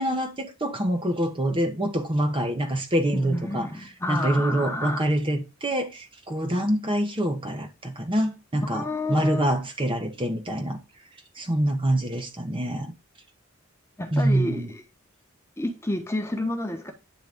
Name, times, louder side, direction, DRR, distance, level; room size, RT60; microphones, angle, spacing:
voice 1, 0.0-3.7 4.1-10.8 11.4-12.9 14.1-14.7, right 1 dB, 25° right, 1.0 m, -25 dB
voice 2, 3.1-5.0 8.6-9.4 14.0-14.8 15.6-16.9, left 1 dB, 10° left, 1.1 m, -30 dB
9.3 x 3.9 x 3.5 m
head